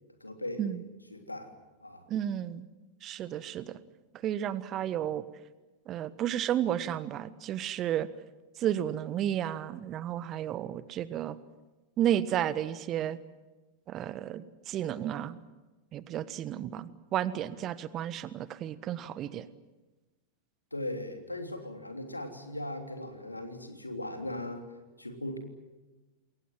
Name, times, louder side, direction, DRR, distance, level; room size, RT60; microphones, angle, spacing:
voice 1, 0.2-0.8 1.1-1.5 1.8-2.0 20.7-24.7 25.0-25.4, left 1 dB, 85° left, 5 dB, 3.3 m, -38 dB
voice 2, 2.1-2.6 3.0-3.8 4.2-5.2 5.9-8.1 8.6-11.4 12.0-13.2 13.9-15.4 15.9-19.5, right 11 dB, 30° right, 16 dB, 1.3 m, -32 dB
28.5 x 22.0 x 7.6 m, 1.2 s
figure-of-eight pair, 90°, 0 cm